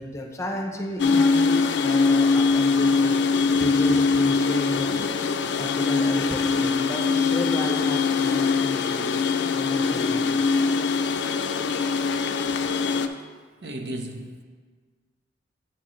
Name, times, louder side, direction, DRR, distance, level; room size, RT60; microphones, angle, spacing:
voice 1, 0.0-5.1 5.6-9.2 9.5-10.3, equal, 15° left, 1 dB, 0.6 m, -33 dB
sound 1, 1.0-13.1, left 4 dB, 75° left, 0.4 m, -22 dB
voice 2, 13.6-14.4, right 1 dB, 70° right, 4 dB, 0.7 m, -34 dB
8.8 x 6.4 x 3.1 m, 1.5 s
head